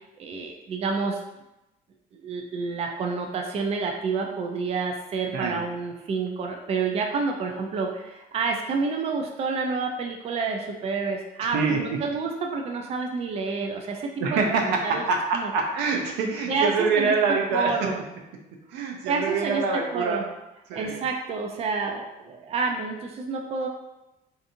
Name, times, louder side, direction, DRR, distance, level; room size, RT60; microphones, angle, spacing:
voice 1, 0.2-1.2 2.1-15.0 15.3-15.5 16.5-17.1 17.5-18.0 19.1-19.6 19.9-20.2 20.7-23.7, right 4 dB, 40° right, 2 dB, 0.4 m, -29 dB
voice 2, 14.2-17.7 18.7-20.2 20.7-21.0, right 4 dB, 90° right, 2 dB, 0.5 m, -25 dB
2.6 x 2.5 x 2.5 m, 0.94 s
cardioid pair, 110°, 17 cm